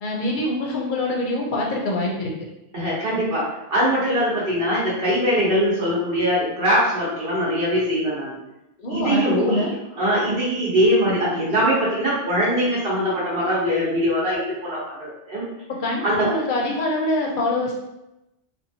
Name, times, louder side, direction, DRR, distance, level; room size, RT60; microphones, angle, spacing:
voice 1, 0.0-2.3 8.8-9.7 15.8-17.7, left 1 dB, 55° left, -1 dB, 0.7 m, -24 dB
voice 2, 2.7-8.4 8.9-15.5 16.0-16.3, equal, 65° right, -7 dB, 1.1 m, -22 dB
2.8 x 2.3 x 2.6 m, 0.92 s
omnidirectional pair, 1.1 m